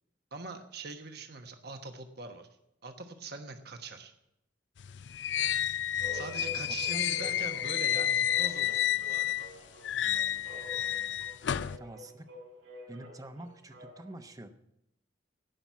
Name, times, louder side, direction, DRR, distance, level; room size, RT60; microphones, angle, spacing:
voice 1, 0.3-2.5 2.8-4.1 6.1-9.5, right 3 dB, 60° right, 6 dB, 1.2 m, -43 dB
sound 1, 4.8-9.5 9.8-11.8, left 11 dB, 70° left, 0.4 m, -30 dB
sound 2, 6.0-14.2, left 1 dB, 90° right, 5.1 m, -47 dB
voice 2, 11.8-12.3 12.9-14.5, right 1 dB, 20° right, 8 dB, 0.9 m, -46 dB
18.0 x 6.0 x 8.3 m, 0.82 s
head